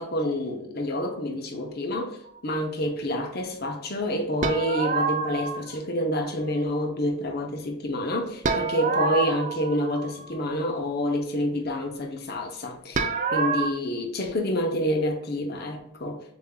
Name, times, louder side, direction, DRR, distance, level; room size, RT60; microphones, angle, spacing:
voice 1, 0.0-2.2 2.4-16.2, equal, 50° left, 0.7 m, -28 dB
sound 1, 4.4-5.7 8.4-10.4 12.9-13.7, right 4 dB, 35° right, 0.4 m, -27 dB
6.8 x 2.6 x 2.3 m
head